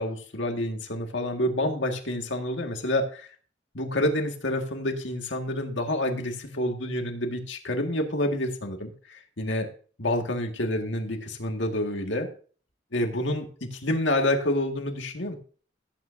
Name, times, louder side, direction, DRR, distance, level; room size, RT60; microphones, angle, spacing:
voice 1, 0.0-3.3 3.7-9.7 10.0-12.3 12.9-15.4, left 1 dB, 75° left, 4 dB, 1.9 m, -28 dB
17.0 x 8.7 x 2.7 m, 0.41 s
head